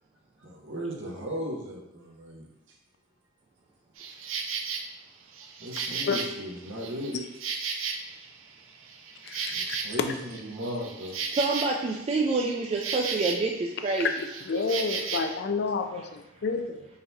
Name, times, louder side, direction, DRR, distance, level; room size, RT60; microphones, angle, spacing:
voice 1, 0.4-2.5 5.6-7.1 9.5-11.2, equal, 65° right, -1 dB, 0.9 m, -36 dB
Insect, 4.0-4.8 5.3-8.4 8.7-13.6 13.8-15.4, right 5 dB, 90° right, 0.5 m, -35 dB
voice 2, 9.2-9.8 14.0-14.1 14.4-16.9, left 4 dB, 55° left, 6 dB, 0.4 m, -30 dB
voice 3, 11.3-14.1, right 3 dB, 30° right, -1 dB, 0.3 m, -27 dB
4.5 x 3.9 x 2.7 m, 0.90 s
head